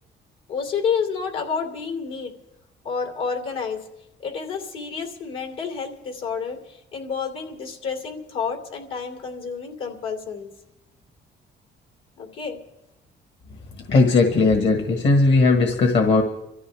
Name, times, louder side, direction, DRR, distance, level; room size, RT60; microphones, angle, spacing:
voice 1, 0.5-2.3 2.8-3.8 4.2-10.5 12.2-12.6, left 6 dB, 85° left, 3 dB, 2.9 m, -29 dB
voice 2, 13.9-16.2, left 3 dB, 65° left, 4 dB, 1.7 m, -17 dB
25.5 x 14.0 x 3.5 m, 0.86 s
cardioid pair, 90°, 20 cm